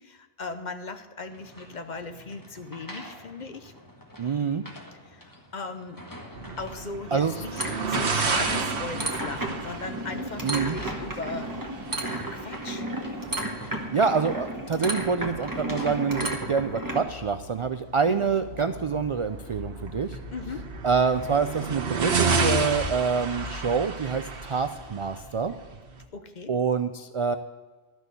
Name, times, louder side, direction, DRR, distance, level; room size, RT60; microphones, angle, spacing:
voice 1, 0.0-3.7 5.1-6.0 6.6-11.5 12.0-12.9 18.1-18.2 20.3-20.7 26.1-26.5, left 4 dB, 50° left, 8 dB, 0.9 m, -38 dB
sound 1, 1.3-16.4, equal, 20° left, 1.5 m, -48 dB
voice 2, 4.2-4.7 7.1-7.4 10.4-10.8 13.9-20.2 20.8-25.5 26.5-27.4, right 5 dB, 50° right, 10 dB, 0.3 m, -26 dB
sound 2, 6.3-26.0, right 4 dB, 85° right, 1.4 m, -32 dB
sound 3, 7.6-17.0, right 1 dB, 20° right, 1.4 m, -33 dB
12.5 x 6.2 x 8.2 m, 1.4 s
omnidirectional pair, 1.1 m